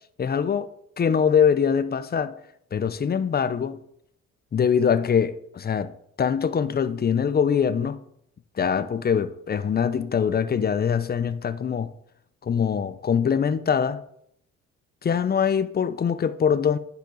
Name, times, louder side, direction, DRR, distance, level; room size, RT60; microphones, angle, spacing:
voice 1, 0.2-0.7 1.0-2.3 2.7-3.8 4.5-5.9 6.2-8.0 8.6-11.9 12.4-14.0 15.0-16.8, left 7 dB, 30° left, 0.6 m, -23 dB
9.2 x 6.9 x 3.9 m
cardioid pair, 90°, 30 cm